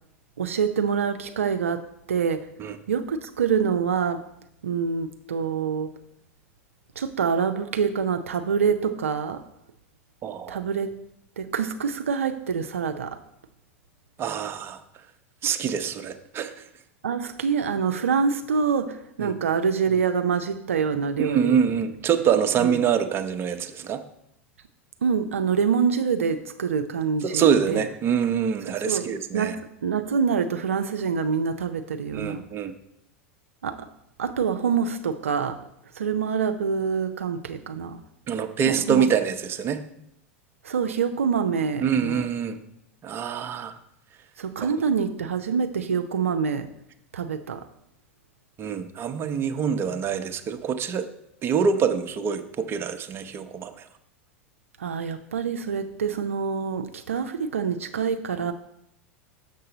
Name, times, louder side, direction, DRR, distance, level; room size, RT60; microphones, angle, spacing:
voice 1, 0.4-2.5 2.9-4.2 4.6-5.9 7.0-9.4 10.5-10.9 11.4-13.2 17.0-21.7 22.6-22.7 25.0-27.8 28.9-29.1 29.3-32.4 33.6-33.9 34.2-35.6 35.9-38.0 38.7-39.1 40.6-42.2 44.4-46.7 47.1-47.6 54.8-58.5, right 6 dB, 80° right, 7 dB, 0.5 m, -26 dB
voice 2, 10.2-10.6 14.2-14.8 15.4-16.6 19.2-19.4 21.2-24.0 27.2-29.6 32.1-32.7 38.3-39.8 41.8-42.6 43.0-43.7 44.6-44.7 48.6-51.0 51.4-53.7, right 7 dB, 35° right, 8 dB, 0.7 m, -25 dB
6.7 x 6.5 x 3.9 m, 0.77 s
hypercardioid pair, 90°, 7 cm